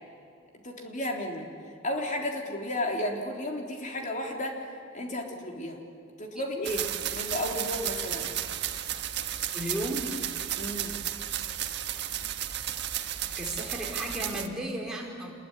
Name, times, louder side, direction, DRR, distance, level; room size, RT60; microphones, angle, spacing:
voice 1, 0.6-1.5 1.8-5.8 6.2-8.3 10.6-11.0, left 1 dB, 40° left, 1 dB, 3.6 m, -33 dB
sound 1, 6.6-14.5, right 11 dB, 55° right, 1.5 m, -33 dB
voice 2, 9.5-10.1 13.4-15.3, right 1 dB, 5° right, -1 dB, 4.4 m, -34 dB
27.5 x 21.5 x 9.8 m, 2.4 s
head